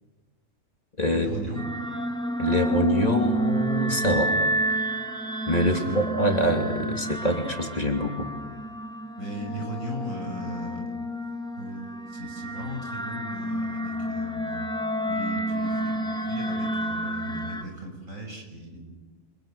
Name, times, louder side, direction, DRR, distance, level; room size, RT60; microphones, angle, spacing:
voice 1, 1.1-1.6 5.7-6.0 9.2-10.8 11.5-14.6 15.1-16.0 16.3-18.8, equal, 90° right, 2 dB, 6.9 m, -37 dB
sound 1, 1.6-17.6, right 1 dB, 5° left, 1.4 m, -30 dB
voice 2, 2.4-4.3 5.5-8.3, equal, 30° left, 2 dB, 3.0 m, -25 dB
29.5 x 25.5 x 7.0 m, 1.3 s
omnidirectional pair, 1.3 m